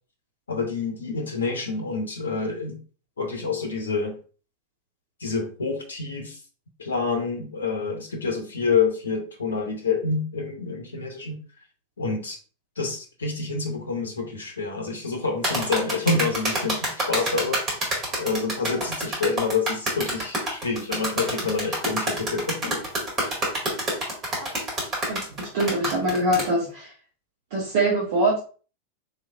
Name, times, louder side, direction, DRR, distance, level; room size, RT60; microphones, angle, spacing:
voice 1, 0.5-2.8 3.2-4.2 5.2-6.4 6.8-11.4 12.0-12.4 12.8-17.6 18.2-22.8, left 4 dB, 70° left, 4 dB, 0.7 m, -27 dB
sound 1, 15.4-26.5, right 1 dB, 30° right, 1.8 m, -27 dB
voice 2, 25.1-26.9 27.5-28.4, right 1 dB, 50° right, -5 dB, 1.2 m, -23 dB
4.2 x 3.1 x 2.4 m, 0.38 s
figure-of-eight pair, 90°, 0 cm